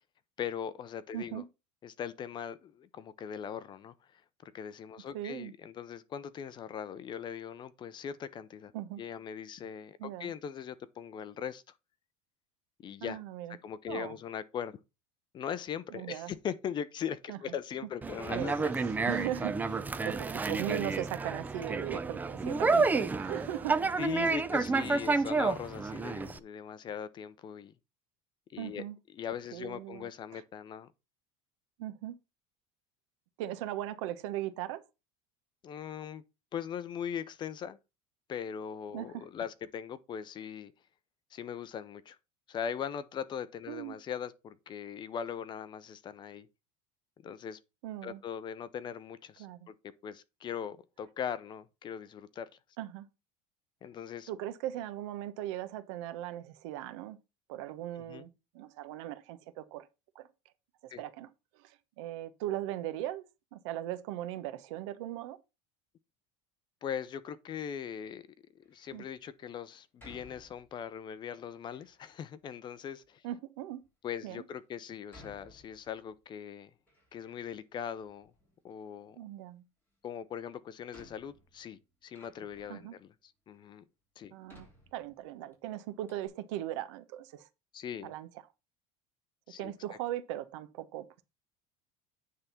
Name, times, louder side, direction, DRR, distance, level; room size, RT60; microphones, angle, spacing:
voice 1, 0.4-1.4 1.8-8.7 9.0-11.6 12.8-13.2 13.6-14.8 15.3-18.7 24.0-27.7 28.5-28.8 29.1-30.9 35.6-36.2 36.5-37.8 38.3-40.7 41.3-42.2 42.5-46.5 47.2-47.6 48.0-49.7 50.0-52.5 53.8-54.3 58.0-58.3 60.9-61.0 66.8-68.3 68.5-73.2 74.0-76.7 77.1-78.3 78.6-79.2 80.0-83.1 83.5-83.8 84.2-84.3 87.7-88.1 89.5-89.7, left 8 dB, 30° left, 0.7 m, -40 dB
voice 2, 1.1-1.5 5.1-5.5 8.7-9.0 10.0-10.3 13.0-13.6 13.9-14.1 15.9-16.3 17.3-17.4 18.3-23.8 28.6-29.0 29.5-30.4 31.8-32.2 33.4-34.8 38.9-39.2 43.7-44.0 47.8-48.2 49.4-49.7 52.8-53.1 54.3-57.2 57.5-59.9 60.1-60.3 61.0-61.3 61.6-63.2 63.5-65.4 68.9-69.0 73.2-73.8 74.2-74.4 79.2-79.6 82.7-83.0 84.3-87.5 88.0-88.3 89.6-91.1, right 13 dB, 80° right, 1.1 m, -39 dB
Conversation, 18.0-26.4, right 3 dB, 10° right, 0.5 m, -30 dB
Door, 68.6-69.1 70.0-71.0 71.6-72.3 73.0-73.1 73.8-73.9 75.1-76.2 76.6-77.7 77.9-78.8 80.1-80.2 80.9-82.9 83.5-83.6 84.5-85.5 85.8-85.9 86.1-86.3, left 1 dB, 15° left, 3.8 m, -58 dB
9.5 x 3.7 x 5.8 m
cardioid pair, 145°, 15 cm